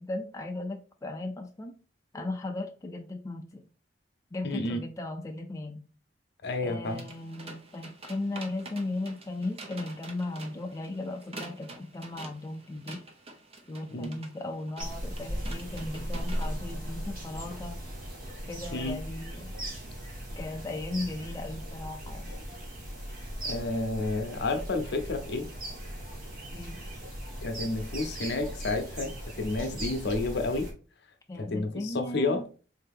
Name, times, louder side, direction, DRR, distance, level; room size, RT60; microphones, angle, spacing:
voice 1, 0.0-1.8 2.1-3.7 4.3-5.8 6.6-13.0 13.7-17.8 18.5-19.5 20.4-22.3 26.5-26.8 31.3-32.5, left 2 dB, 15° left, 0.3 m, -37 dB
voice 2, 4.4-4.8 6.4-7.0 13.9-14.2 18.7-19.0 23.4-25.5 27.4-30.7 31.3-32.4, left 2 dB, 65° left, 0.7 m, -31 dB
sound 1, 6.8-16.5, right 2 dB, 35° right, 0.7 m, -47 dB
sound 2, 14.8-30.7, equal, 50° right, 1.5 m, -38 dB
3.7 x 2.8 x 3.5 m
head